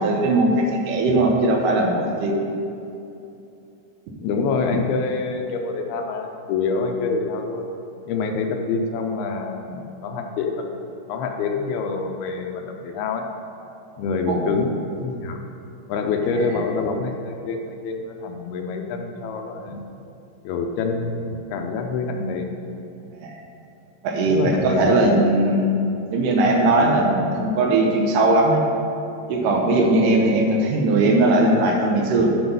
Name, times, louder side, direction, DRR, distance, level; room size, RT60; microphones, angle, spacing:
voice 1, 0.0-2.4 4.7-4.8 14.3-14.5 16.3-16.6 23.2-23.3 24.0-25.8 26.1-28.7 29.3-32.3, right 2 dB, 75° right, 1 dB, 2.1 m, -19 dB
voice 2, 4.2-7.7 8.1-10.7 11.1-13.3 14.0-15.4 15.9-19.8 20.4-22.5 24.3-25.0 30.0-30.4, left 4 dB, 80° left, 4 dB, 2.5 m, -26 dB
7.8 x 6.3 x 5.3 m, 2.8 s
omnidirectional pair, 4.6 m